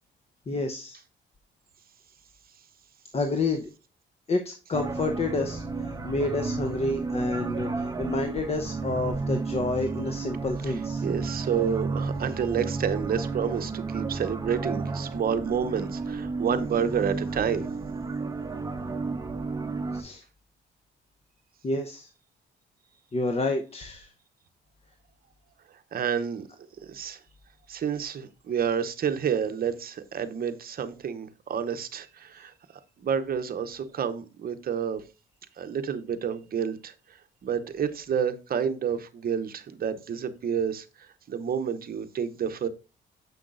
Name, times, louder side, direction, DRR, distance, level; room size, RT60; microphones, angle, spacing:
voice 1, 0.5-1.0 3.1-3.7 4.3-11.0 19.9-20.2 21.6-22.1 23.1-24.1, left 2 dB, 30° left, 0.8 m, -29 dB
sound 1, 4.7-20.0, right 4 dB, 20° right, 0.8 m, -32 dB
voice 2, 11.0-17.7 25.9-26.5 26.8-27.2 27.7-32.5 33.0-35.0 35.6-36.9 37.4-42.7, right 7 dB, 50° right, 0.8 m, -29 dB
6.8 x 5.9 x 2.5 m
cardioid pair, 90°, 20 cm